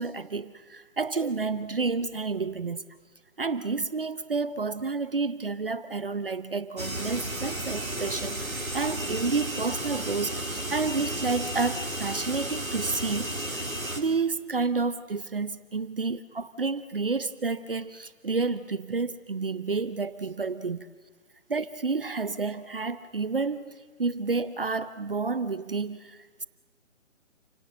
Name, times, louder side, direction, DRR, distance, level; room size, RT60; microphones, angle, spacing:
voice 1, 0.0-2.8 3.4-13.6 14.0-20.9 21.5-26.5, right 4 dB, 45° right, 15 dB, 0.8 m, -30 dB
sound 1, 6.8-14.0, right 1 dB, 85° right, 3.3 m, -33 dB
30.0 x 17.5 x 7.7 m, 1.4 s
figure-of-eight pair, 150°, 40 cm